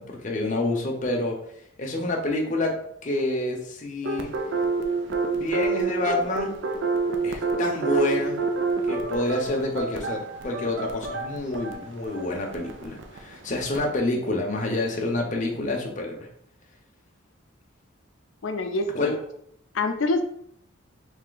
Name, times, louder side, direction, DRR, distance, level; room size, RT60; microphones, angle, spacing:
voice 1, 0.0-1.4 1.8-2.8 3.0-4.3 5.3-6.5 7.2-8.4 8.9-16.3 18.9-19.1, left 2 dB, 40° left, 0 dB, 0.7 m, -28 dB
sound 1, 4.0-13.9, right 4 dB, 65° right, 0.4 m, -28 dB
voice 2, 18.4-19.2 19.7-20.2, left 2 dB, 75° left, 6 dB, 0.5 m, -26 dB
3.3 x 2.8 x 3.9 m, 0.70 s
head